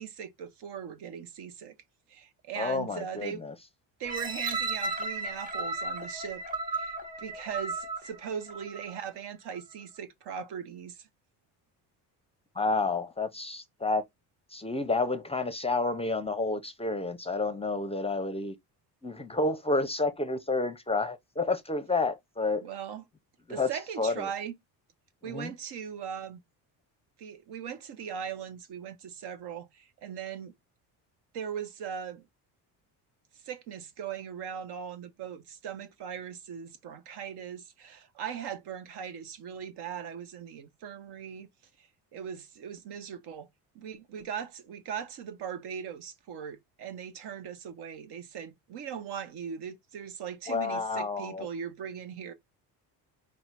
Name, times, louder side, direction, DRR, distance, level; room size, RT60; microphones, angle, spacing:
voice 1, 0.0-1.7 2.1-3.4 4.0-6.4 6.7-11.1 22.6-23.0 23.5-24.5 25.2-26.4 27.2-30.5 31.3-32.3 33.4-41.5 41.8-43.5 43.7-52.3, right 8 dB, 70° right, 1.0 m, -39 dB
voice 2, 2.5-3.5 12.5-14.0 14.5-18.5 19.0-22.6 23.5-23.7 24.0-24.3 25.2-25.5 50.5-51.5, left 3 dB, 15° left, 0.6 m, -30 dB
sound 1, 4.0-9.0 9.6-9.7, right 3 dB, 20° right, 1.2 m, -35 dB
5.4 x 2.2 x 4.6 m
cardioid pair, 90°, 42 cm